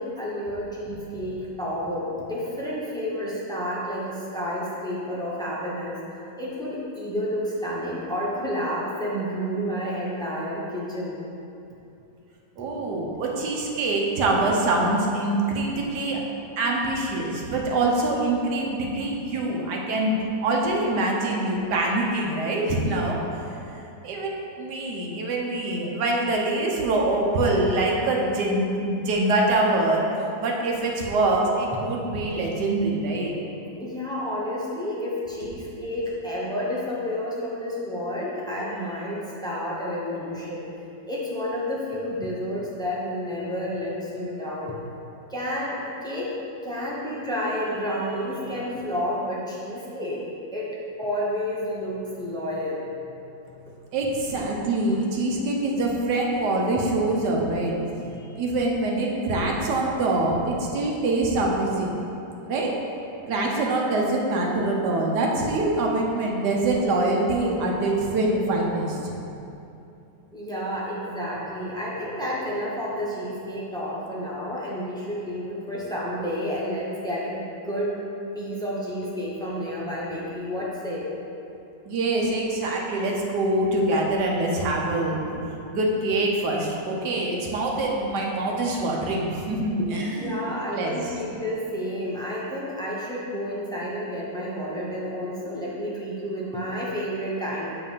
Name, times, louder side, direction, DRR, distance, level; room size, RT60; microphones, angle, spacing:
voice 1, 0.0-6.0 6.4-11.2 33.8-40.7 41.1-44.8 45.3-46.3 46.6-50.2 50.5-53.2 53.5-53.6 58.0-58.4 70.3-78.0 78.3-81.1 90.0-97.7, equal, 5° left, -6 dB, 0.5 m, -30 dB
voice 2, 12.6-16.2 16.6-23.2 24.0-30.0 30.4-33.4 53.9-57.8 58.4-62.0 62.5-62.7 63.3-69.1 81.9-85.4 85.7-90.5 90.7-91.1, right 2 dB, 65° right, -1 dB, 1.4 m, -24 dB
7.0 x 3.4 x 5.5 m, 2.8 s
omnidirectional pair, 2.0 m